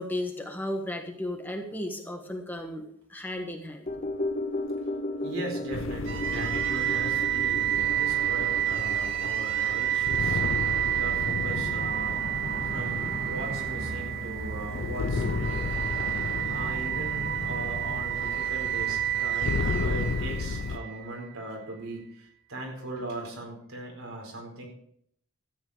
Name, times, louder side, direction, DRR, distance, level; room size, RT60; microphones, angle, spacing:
voice 1, 0.0-3.9, left 1 dB, 10° left, 3 dB, 1.4 m, -34 dB
sound 1, 3.9-12.3 12.6-12.7, left 1 dB, 30° left, 0.6 m, -36 dB
voice 2, 5.2-12.4 12.6-24.7, right 1 dB, 85° right, 1 dB, 4.4 m, -39 dB
sound 2, 5.7-20.8, left 4 dB, 70° left, 0.5 m, -34 dB
sound 3, 6.1-21.2, right 10 dB, 55° right, 1.8 m, -29 dB
13.5 x 9.6 x 4.8 m, 0.67 s
head